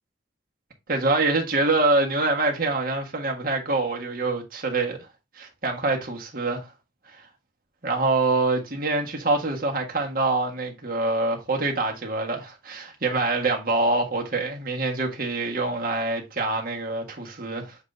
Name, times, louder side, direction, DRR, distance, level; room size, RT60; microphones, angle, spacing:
voice 1, 0.9-5.0 5.4-6.7 7.8-17.8, right 2 dB, 50° right, 1.6 m, -25 dB
7.1 x 4.0 x 3.3 m
head